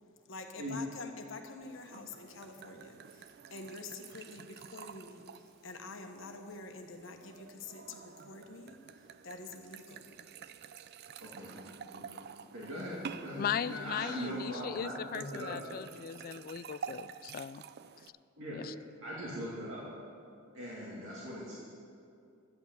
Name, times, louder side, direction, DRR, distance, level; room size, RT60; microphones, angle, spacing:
voice 1, 0.3-10.1, left 3 dB, 65° left, 4 dB, 1.2 m, -47 dB
sound 1, 1.6-18.1, right 7 dB, 50° right, 0.4 m, -50 dB
voice 2, 11.2-12.2 12.5-15.6 18.4-18.6 19.0-19.8 20.5-21.5, equal, 75° right, -7 dB, 2.6 m, -41 dB
voice 3, 13.4-17.6 18.5-18.7, left 8 dB, 45° left, 15 dB, 0.3 m, -38 dB
12.5 x 8.2 x 8.4 m, 2.5 s
head